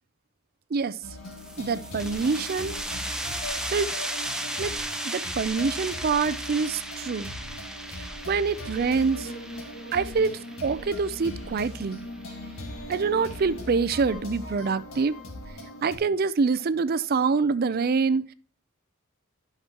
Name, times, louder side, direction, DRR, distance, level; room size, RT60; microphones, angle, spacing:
sound 1, 1.0-16.0, left 1 dB, 85° left, 1.9 m, -39 dB
sound 2, 1.3-12.6, right 1 dB, 5° right, 0.8 m, -36 dB
voice 1, 1.6-2.8 3.7-3.9 4.6-4.7 5.0-7.3 8.0-9.3 9.9-12.0 12.9-15.1 15.8-18.3, right 5 dB, 50° right, 0.4 m, -26 dB
11.0 x 5.9 x 2.9 m
head